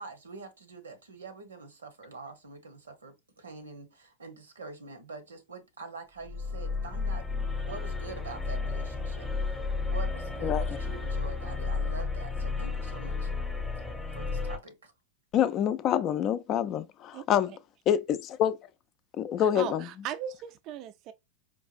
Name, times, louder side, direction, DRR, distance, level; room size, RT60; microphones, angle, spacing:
voice 1, 0.0-13.3 14.1-14.9, right 4 dB, 85° right, 0.9 m, -45 dB
sound 1, 6.2-14.6, left 4 dB, 5° left, 0.8 m, -32 dB
voice 2, 15.3-17.5 17.9-18.6 19.2-19.9, left 10 dB, 40° left, 0.4 m, -26 dB
voice 3, 19.4-21.1, right 10 dB, 45° right, 0.4 m, -38 dB
4.5 x 2.4 x 2.5 m
hypercardioid pair, 95°, 0 cm